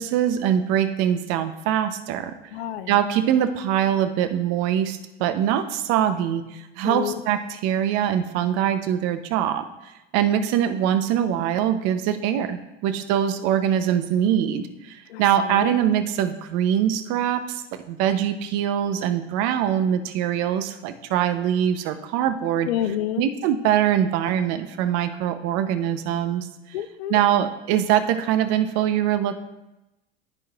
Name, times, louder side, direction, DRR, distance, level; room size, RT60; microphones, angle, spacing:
voice 1, 0.0-2.4 2.9-22.7 23.2-26.5 27.1-29.4, right 10 dB, 55° right, 10 dB, 0.7 m, -23 dB
voice 2, 2.5-3.0 6.8-7.2 15.1-15.8 22.6-23.2 26.7-27.2, left 11 dB, 75° left, 13 dB, 0.6 m, -29 dB
13.0 x 4.7 x 2.4 m, 0.99 s
hypercardioid pair, 90°, 31 cm